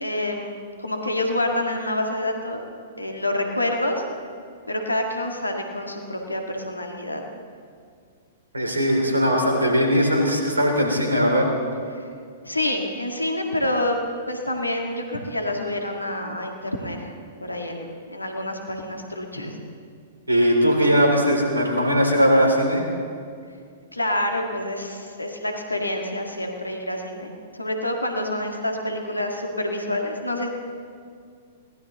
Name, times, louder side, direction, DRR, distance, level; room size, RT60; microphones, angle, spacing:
voice 1, 0.0-0.5 0.8-2.6 3.0-4.0 4.7-7.2 11.9-12.0 12.4-14.0 14.3-17.1 17.4-19.6 23.9-27.3 27.6-30.5, left 1 dB, 85° left, 2 dB, 1.8 m, -27 dB
voice 2, 8.5-11.5 20.3-22.9, equal, 75° right, 2 dB, 2.9 m, -19 dB
21.5 x 18.5 x 3.0 m, 2.2 s
figure-of-eight pair, 110°, 0 cm